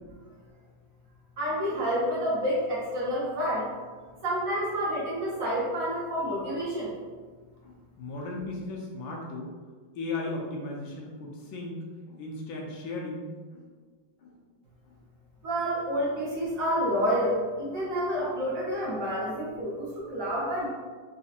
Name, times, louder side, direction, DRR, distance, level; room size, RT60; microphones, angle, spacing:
voice 1, 1.4-3.7 4.2-6.9 15.4-20.7, equal, 55° right, -8 dB, 1.0 m, -29 dB
voice 2, 7.6-9.5 10.0-11.8 12.1-13.6 14.2-14.3, left 2 dB, 85° left, -1 dB, 1.5 m, -36 dB
4.1 x 2.7 x 2.4 m, 1.5 s
omnidirectional pair, 2.2 m